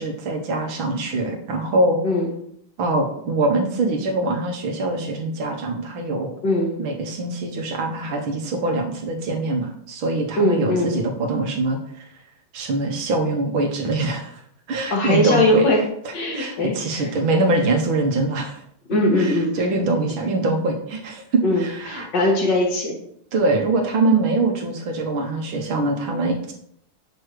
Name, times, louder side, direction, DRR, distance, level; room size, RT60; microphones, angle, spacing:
voice 1, 0.0-2.0 2.8-6.3 6.8-11.8 12.5-14.3 14.7-15.7 16.4-18.6 19.2-22.1 23.3-26.5, right 2 dB, 80° right, 2 dB, 1.9 m, -23 dB
voice 2, 6.4-6.8 10.4-10.9 14.9-15.8 16.1-17.1 18.9-19.7 21.4-23.0, left 1 dB, 65° left, 0 dB, 2.0 m, -20 dB
6.5 x 6.1 x 3.1 m, 0.71 s
omnidirectional pair, 2.2 m